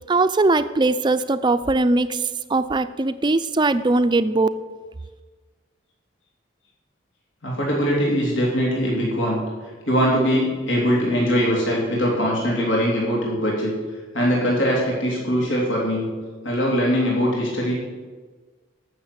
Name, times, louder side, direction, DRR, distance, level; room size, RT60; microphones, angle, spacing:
voice 1, 0.1-4.5, right 2 dB, 25° right, 12 dB, 0.5 m, -20 dB
voice 2, 7.4-9.4 9.8-13.7 14.1-16.1 16.4-17.7, equal, 90° left, -3 dB, 3.2 m, -21 dB
13.5 x 6.6 x 7.9 m, 1.4 s
head